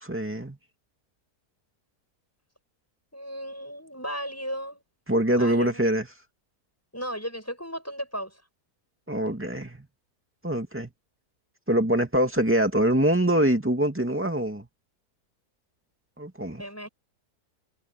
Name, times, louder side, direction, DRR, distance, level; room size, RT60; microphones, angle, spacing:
voice 1, 0.0-0.6 5.1-6.1 9.1-9.9 10.4-10.9 11.7-14.7 16.2-16.6, right 1 dB, 10° right, 2.3 m, -24 dB
voice 2, 3.1-4.8 5.3-5.8 6.9-8.4 16.6-16.9, equal, 10° left, 8.1 m, -35 dB
omnidirectional pair, 1.6 m